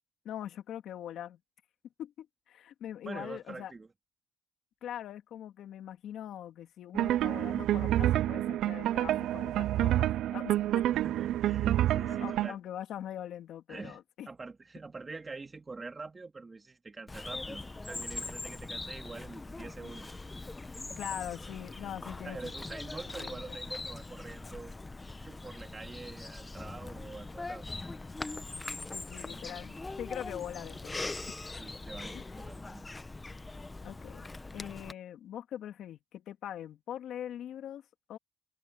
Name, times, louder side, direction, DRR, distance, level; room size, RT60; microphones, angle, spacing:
voice 1, 0.2-1.4 2.0-3.7 4.8-10.9 12.1-14.3 21.0-22.5 23.2-23.6 28.9-31.0 32.1-32.3 33.8-38.2, left 10 dB, 75° left, 2.5 m, -42 dB
voice 2, 3.0-3.9 10.9-12.6 13.7-14.0 14.3-20.1 22.2-24.8 25.2-27.7 31.6-32.8, right 3 dB, 30° right, 2.9 m, -45 dB
sound 1, 6.9-12.5, right 13 dB, 80° right, 0.4 m, -28 dB
Bird vocalization bird call bird song, 17.1-34.9, left 2 dB, 20° left, 0.9 m, -42 dB
cardioid pair, 90°, 0 cm